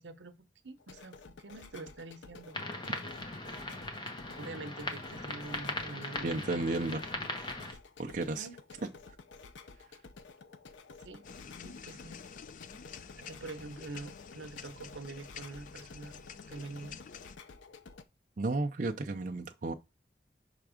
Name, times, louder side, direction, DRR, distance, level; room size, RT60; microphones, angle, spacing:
voice 1, 0.0-2.6 4.4-6.7 8.3-8.5 11.0-11.3 11.6-12.2 13.2-16.2 16.5-17.0, right 3 dB, 85° right, 0.8 m, -45 dB
sound 1, 0.8-18.0, left 4 dB, 90° left, 0.6 m, -52 dB
sound 2, 2.5-7.7, left 2 dB, 25° left, 1.0 m, -39 dB
voice 2, 6.2-7.1 8.0-8.5 18.4-19.7, right 2 dB, 45° right, 0.5 m, -33 dB
sound 3, 11.2-17.4, left 7 dB, 45° left, 0.3 m, -49 dB
5.8 x 3.5 x 4.9 m
head